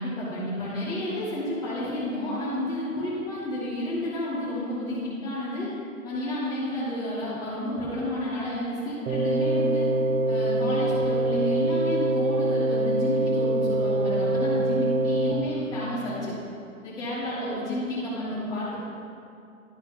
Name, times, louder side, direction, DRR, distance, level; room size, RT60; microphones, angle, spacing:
voice 1, 0.0-5.7 6.0-9.9 10.2-16.3 16.8-18.7, left 1 dB, 10° left, -13 dB, 2.4 m, -30 dB
sound 1, 9.1-15.3, right 2 dB, 80° right, 1.2 m, -24 dB
12.0 x 4.8 x 5.6 m, 2.5 s
hypercardioid pair, 140°, 42 cm